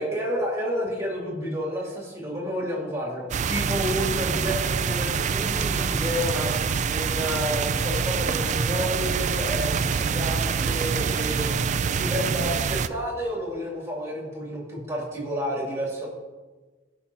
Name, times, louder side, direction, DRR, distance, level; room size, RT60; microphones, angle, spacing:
voice 1, 0.0-6.5 6.9-16.1, equal, 15° right, -4 dB, 2.6 m, -30 dB
sound 1, 3.3-12.9, right 6 dB, 40° right, 0.3 m, -25 dB
16.5 x 5.7 x 2.9 m, 1.3 s
head